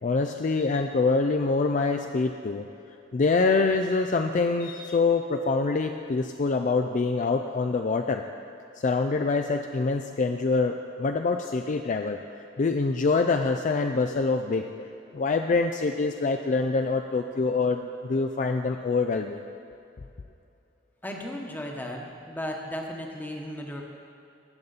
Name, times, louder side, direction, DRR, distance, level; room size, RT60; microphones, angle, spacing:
voice 1, 0.0-2.7 3.1-8.3 8.8-12.2 12.6-14.7 15.1-19.4, left 4 dB, 40° left, 5 dB, 0.4 m, -25 dB
voice 2, 21.0-23.8, equal, 10° left, 0 dB, 1.1 m, -35 dB
17.5 x 7.1 x 4.1 m, 2.6 s
head